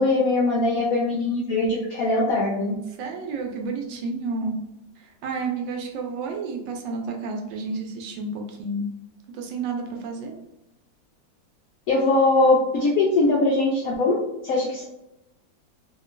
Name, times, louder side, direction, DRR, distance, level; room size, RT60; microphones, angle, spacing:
voice 1, 0.0-2.7 11.9-14.2 14.4-14.8, left 2 dB, 85° left, -3 dB, 0.7 m, -21 dB
voice 2, 3.0-4.6 5.0-8.9 9.3-10.3, right 3 dB, 80° right, 2 dB, 1.3 m, -31 dB
2.9 x 2.8 x 2.5 m, 0.88 s
omnidirectional pair, 2.1 m